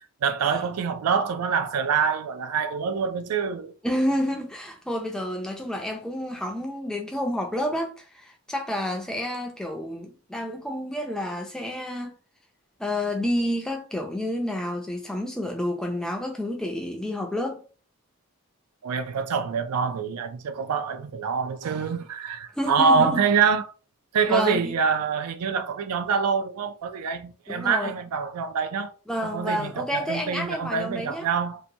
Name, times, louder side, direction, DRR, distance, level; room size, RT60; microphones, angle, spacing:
voice 1, 0.2-3.7 18.8-23.7 24.1-28.9 29.2-31.6, right 5 dB, 90° right, 0.4 m, -25 dB
voice 2, 3.8-12.1 12.8-17.6 22.6-23.2 24.3-24.7 27.5-28.0 29.1-31.3, left 1 dB, 5° left, 0.3 m, -29 dB
2.8 x 2.1 x 2.6 m
head